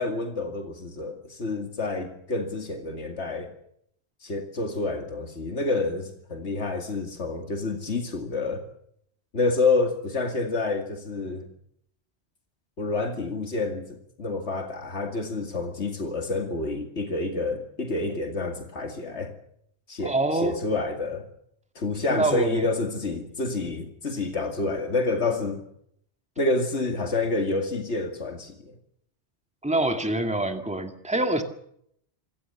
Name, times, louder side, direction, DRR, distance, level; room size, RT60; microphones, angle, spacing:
voice 1, 0.0-3.5 4.2-8.6 9.3-11.5 12.8-19.3 19.9-21.3 21.8-25.6 26.4-28.7, left 3 dB, 85° left, 5 dB, 2.5 m, -28 dB
voice 2, 20.0-20.6 22.1-22.7 29.6-31.4, right 2 dB, 5° right, 6 dB, 2.1 m, -25 dB
26.0 x 16.5 x 7.0 m, 0.70 s
omnidirectional pair, 1.1 m